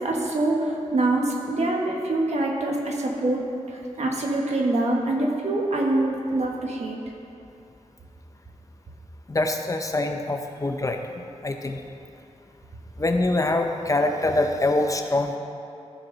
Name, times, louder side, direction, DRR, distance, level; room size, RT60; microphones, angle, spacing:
voice 1, 0.0-7.0, right 2 dB, 65° right, -1 dB, 1.4 m, -25 dB
voice 2, 9.3-11.0 11.4-11.8 13.0-15.4, left 2 dB, 25° left, 4 dB, 0.6 m, -24 dB
14.5 x 5.9 x 3.9 m, 2.6 s
wide cardioid pair, 125°, 12 cm